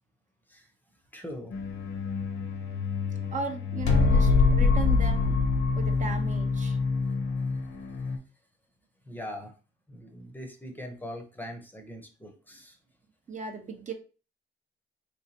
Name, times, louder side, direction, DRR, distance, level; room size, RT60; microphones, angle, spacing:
voice 1, 1.1-1.5 9.1-9.5 9.9-12.8, left 1 dB, 10° left, 4 dB, 0.7 m, -41 dB
sound 1, 1.5-8.2, left 4 dB, 80° left, 0.8 m, -25 dB
voice 2, 3.3-5.4 5.8-6.8 13.3-13.9, right 4 dB, 40° right, 4 dB, 0.6 m, -36 dB
3.2 x 3.0 x 2.8 m, 0.35 s
cardioid pair, 90°, 20 cm